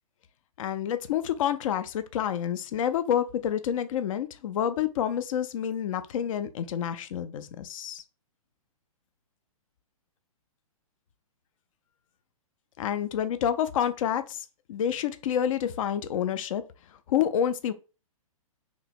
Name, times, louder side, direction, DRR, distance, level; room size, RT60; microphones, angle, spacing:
voice 1, 0.6-8.0 12.8-16.6 17.1-17.7, left 9 dB, 65° left, 0.4 m, -28 dB
2.9 x 2.2 x 4.1 m
hypercardioid pair, 145°, 19 cm